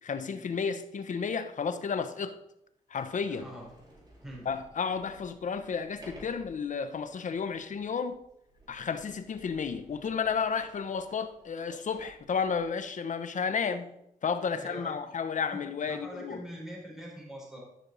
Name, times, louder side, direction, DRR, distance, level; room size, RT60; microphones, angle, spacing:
voice 1, 0.0-2.4 2.9-3.4 4.4-8.2 8.7-13.9 14.2-16.4, left 6 dB, 60° left, 0.9 m, -32 dB
Sliding door, 1.5-1.6 2.3-2.4 2.9-12.8, right 1 dB, 30° right, 4.5 m, -56 dB
voice 2, 3.3-3.7 4.2-4.5 13.6-13.7 14.5-15.0 15.5-17.6, equal, 5° right, 4.5 m, -43 dB
13.0 x 6.5 x 4.1 m
cardioid pair, 70°, 15 cm